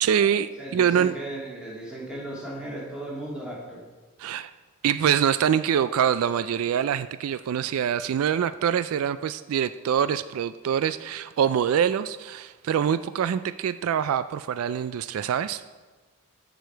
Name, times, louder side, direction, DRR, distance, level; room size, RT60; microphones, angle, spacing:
voice 1, 0.0-1.1 4.2-4.5 4.8-15.6, right 8 dB, 80° right, 14 dB, 0.3 m, -24 dB
voice 2, 0.6-3.8, right 1 dB, 5° right, -5 dB, 2.0 m, -36 dB
14.0 x 5.1 x 4.5 m, 1.3 s
head